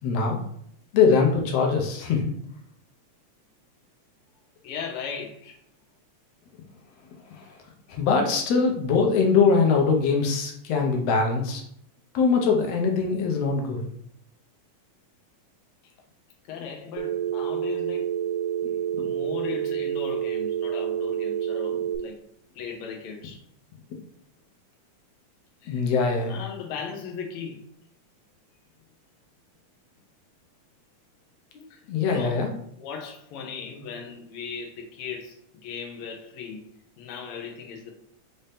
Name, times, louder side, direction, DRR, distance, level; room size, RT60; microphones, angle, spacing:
voice 1, 0.0-0.4 0.9-2.3 7.4-7.5 7.9-11.6 12.1-13.8 18.9-19.1 25.7-26.4 31.5-32.5, left 5 dB, 70° left, 2 dB, 1.6 m, -22 dB
voice 2, 4.6-5.6 16.5-18.1 19.0-22.2 22.5-23.4 25.6-25.8 26.2-27.6 31.7-32.4 32.8-35.4 35.6-36.7 37.0-37.9, left 6 dB, 90° left, 1 dB, 1.2 m, -37 dB
Telephone, 17.0-22.0, right 10 dB, 90° right, 2.2 m, -28 dB
5.4 x 2.7 x 3.4 m, 0.69 s
omnidirectional pair, 3.6 m